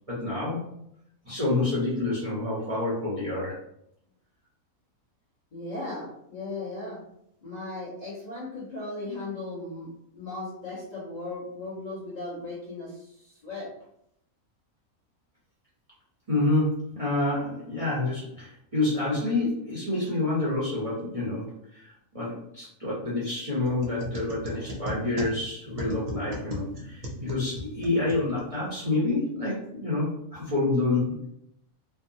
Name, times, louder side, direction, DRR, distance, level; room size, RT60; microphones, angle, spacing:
voice 1, 0.1-0.6 1.2-3.6 16.3-31.3, left 2 dB, 30° right, -8 dB, 0.8 m, -28 dB
voice 2, 5.5-7.0 7.4-9.9 10.1-13.7 24.6-24.8, left 2 dB, 35° left, -8 dB, 1.0 m, -37 dB
sound 1, 23.6-28.8, equal, 75° right, 1.1 m, -38 dB
3.3 x 2.0 x 2.6 m, 0.74 s
omnidirectional pair, 1.5 m